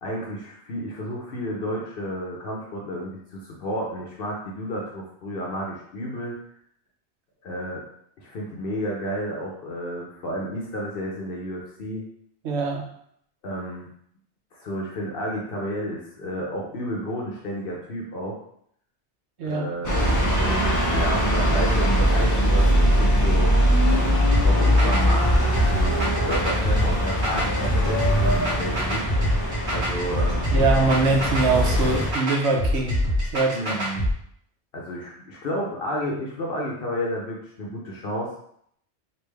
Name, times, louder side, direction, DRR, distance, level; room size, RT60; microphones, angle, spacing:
voice 1, 0.0-6.4 7.4-7.8 8.2-12.0 13.4-13.9 14.5-18.4 19.4-19.9 20.4-23.5 24.4-29.1 29.7-30.5 33.5-34.1 34.7-38.3, equal, 60° left, -2 dB, 0.8 m, -31 dB
voice 2, 12.4-12.8 19.4-19.7 30.5-32.9 33.3-33.6, right 3 dB, 75° right, 1 dB, 1.0 m, -22 dB
sound 1, 19.8-32.1, equal, 25° left, 0.4 m, -21 dB
sound 2, 24.3-34.1, equal, 50° right, 1.3 m, -25 dB
3.3 x 2.5 x 3.3 m, 0.69 s
omnidirectional pair, 1.1 m